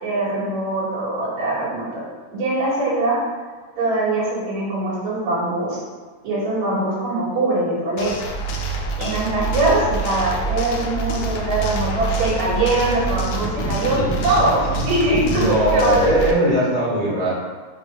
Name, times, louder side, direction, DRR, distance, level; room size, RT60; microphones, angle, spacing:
voice 1, 0.0-2.0 2.3-3.2 3.8-5.8 6.2-8.1 9.0-14.0 14.2-16.1, right 2 dB, 70° right, -7 dB, 3.1 m, -22 dB
sound 1, 8.0-16.3, right 3 dB, 80° left, 1.2 m, -25 dB
voice 2, 15.3-17.3, equal, 20° right, -9 dB, 1.5 m, -19 dB
6.3 x 3.0 x 5.3 m, 1.4 s
omnidirectional pair, 3.4 m